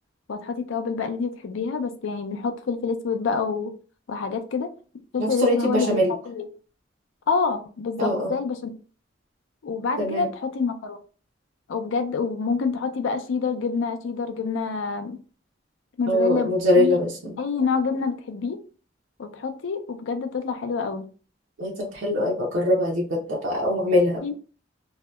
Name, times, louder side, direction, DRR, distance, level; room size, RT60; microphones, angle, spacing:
voice 1, 0.3-3.7 4.1-4.7 5.1-6.0 6.3-6.5 7.3-8.7 9.6-11.0 11.7-15.2 16.0-17.0 17.4-18.6 19.2-21.1 24.2-24.3, left 5 dB, 80° left, 8 dB, 0.4 m, -27 dB
voice 2, 5.2-6.1 8.0-8.4 10.0-10.3 16.1-17.3 21.6-24.3, left 1 dB, 70° right, -3 dB, 0.6 m, -23 dB
2.7 x 2.1 x 2.2 m, 0.38 s
head